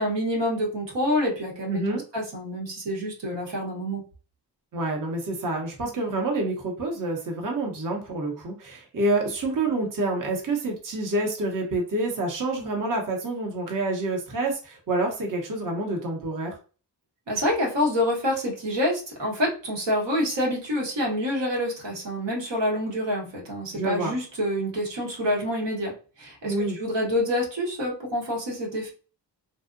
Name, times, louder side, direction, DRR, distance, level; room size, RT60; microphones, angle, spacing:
voice 1, 0.0-4.0 17.3-28.9, left 1 dB, 85° right, -2 dB, 1.0 m, -27 dB
voice 2, 1.7-2.0 4.7-16.6 23.8-24.1 26.4-26.8, right 2 dB, 50° right, 0 dB, 0.7 m, -27 dB
2.6 x 2.0 x 2.4 m, 0.37 s
cardioid pair, 70°, 42 cm